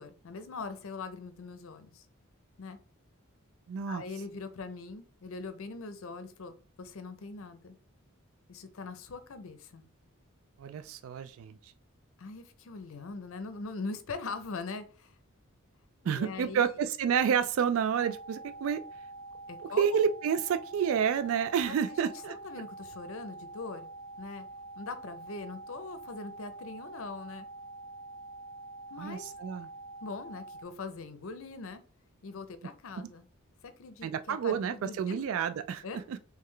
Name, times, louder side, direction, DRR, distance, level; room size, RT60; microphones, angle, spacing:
voice 1, 0.0-2.0 2.6-2.8 3.9-7.8 8.5-9.9 12.2-15.2 16.0-16.7 19.5-20.0 21.7-21.8 22.0-23.9 24.2-24.4 24.8-27.5 28.9-29.2 30.0-31.8 32.2-33.3 33.6-35.2 35.8-36.0, left 4 dB, 65° left, 0.6 m, -42 dB
voice 2, 3.7-4.0 10.6-11.6 16.0-18.8 19.8-22.3 29.0-29.7 34.0-36.2, right 7 dB, 65° right, 0.3 m, -29 dB
sound 1, 18.0-30.6, right 2 dB, 10° left, 0.5 m, -46 dB
3.7 x 3.2 x 3.2 m
head